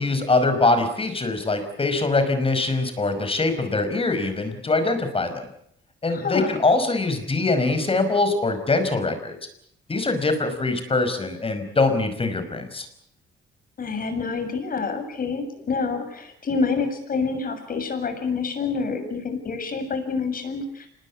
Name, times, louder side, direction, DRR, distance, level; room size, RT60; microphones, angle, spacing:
voice 1, 0.0-5.4 6.0-9.4 9.9-12.9, left 3 dB, 30° left, 8 dB, 5.3 m, -23 dB
voice 2, 6.1-6.5 13.8-20.9, left 4 dB, 45° left, 8 dB, 7.3 m, -27 dB
26.0 x 20.5 x 8.6 m, 0.69 s
cardioid pair, 90°, 20 cm